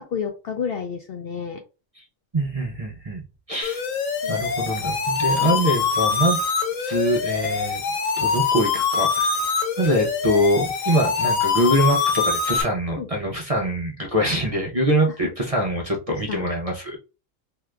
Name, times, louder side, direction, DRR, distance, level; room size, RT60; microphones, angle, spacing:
voice 1, 0.0-1.6 4.2-4.4 5.3-5.6 13.0-13.1 15.2-15.3 16.3-16.4, left 7 dB, 65° left, 4 dB, 0.6 m, -30 dB
voice 2, 2.3-3.2 3.5-3.8 4.2-6.4 6.8-7.8 8.2-9.4 9.8-17.0, equal, 35° right, -1 dB, 0.6 m, -23 dB
sound 1, 3.6-12.6, left 5 dB, 85° left, 1.2 m, -24 dB
2.8 x 2.4 x 3.2 m, 0.31 s
omnidirectional pair, 1.3 m